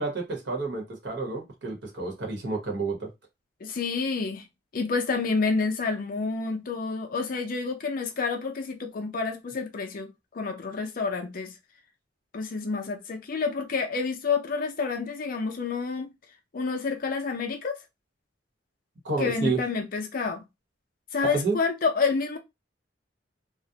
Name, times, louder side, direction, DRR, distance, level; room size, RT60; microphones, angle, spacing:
voice 1, 0.0-3.1 19.0-19.6 21.2-21.6, right 3 dB, 70° right, 0.9 m, -29 dB
voice 2, 3.6-4.4 4.7-11.5 12.3-16.1 16.5-17.8 19.2-20.4 21.1-22.4, left 4 dB, 50° left, 0.5 m, -29 dB
2.4 x 2.0 x 2.7 m
head